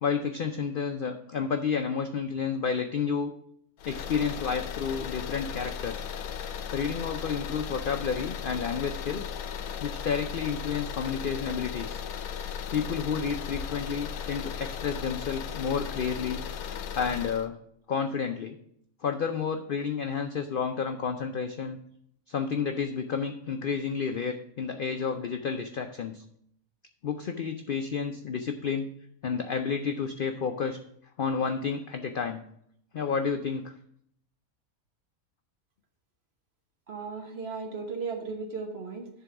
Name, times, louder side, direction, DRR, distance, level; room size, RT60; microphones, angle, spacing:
voice 1, 0.0-3.3 3.9-6.1 6.7-9.2 9.8-12.0 12.7-16.4 16.9-17.6 17.9-18.6 19.0-21.8 22.3-26.2 27.0-28.9 29.2-30.8 31.2-32.4 32.9-33.7, left 6 dB, 70° left, 6 dB, 0.5 m, -30 dB
sound 1, 3.8-17.5, left 7 dB, 85° left, 1.2 m, -36 dB
voice 2, 36.9-39.1, right 4 dB, 45° right, 2 dB, 1.4 m, -36 dB
10.5 x 3.8 x 5.8 m, 0.70 s
omnidirectional pair, 1.5 m